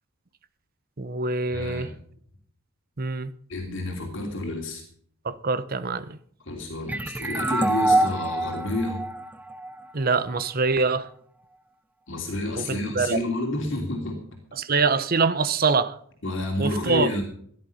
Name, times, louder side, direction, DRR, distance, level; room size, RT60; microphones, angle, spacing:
voice 1, 1.0-1.9 3.0-3.3 5.2-6.2 9.9-11.1 12.6-13.2 14.6-15.9 16.6-17.1, right 4 dB, 40° right, 0.8 m, -24 dB
voice 2, 1.5-2.0 3.5-4.8 6.4-9.0 12.1-14.2 16.2-17.2, left 1 dB, 55° left, 2.9 m, -29 dB
sound 1, 6.9-10.3, right 1 dB, 5° right, 0.6 m, -26 dB
15.5 x 11.0 x 5.6 m
head